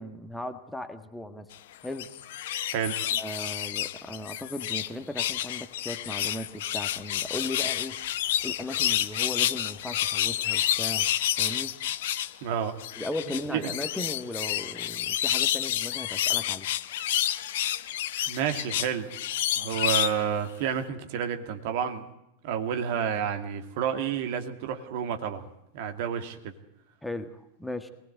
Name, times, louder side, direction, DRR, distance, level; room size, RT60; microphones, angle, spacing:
voice 1, 0.0-1.5 1.8-2.1 3.1-8.0 8.4-11.1 11.4-11.7 13.0-16.7 27.0-27.9, left 1 dB, 5° left, 8 dB, 1.6 m, -37 dB
sound 1, 1.8-4.9 5.2-12.3 12.8-20.2 20.7-20.8, left 12 dB, 55° left, 0.9 m, -29 dB
voice 2, 12.4-12.7 13.5-13.7 18.3-19.1 19.5-22.0 22.4-25.5 25.7-26.5, right 8 dB, 50° right, 6 dB, 2.5 m, -30 dB
23.5 x 19.5 x 8.1 m, 0.83 s
figure-of-eight pair, 90°, 0 cm